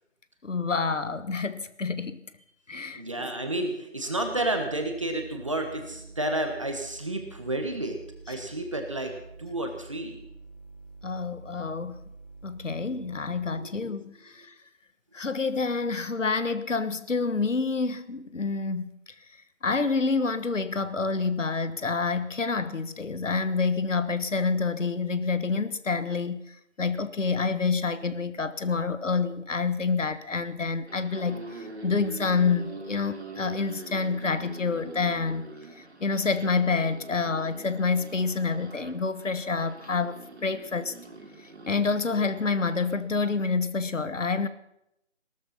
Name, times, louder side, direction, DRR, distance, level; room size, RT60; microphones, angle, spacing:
voice 1, 0.4-2.2 2.7-3.0 8.3-8.4 11.0-12.0 12.4-14.5 15.1-18.9 19.6-40.9 41.4-44.5, left 4 dB, 70° left, 13 dB, 1.3 m, -28 dB
voice 2, 2.7-8.0 8.3-9.1 9.4-10.2 13.4-13.7, right 1 dB, 25° right, 4 dB, 1.5 m, -31 dB
sound 1, 4.1-13.6, right 3 dB, 10° left, 1.6 m, -48 dB
sound 2, 30.9-43.0, right 2 dB, 60° right, 2.9 m, -44 dB
18.0 x 13.5 x 5.7 m, 0.79 s
figure-of-eight pair, 175°, 38 cm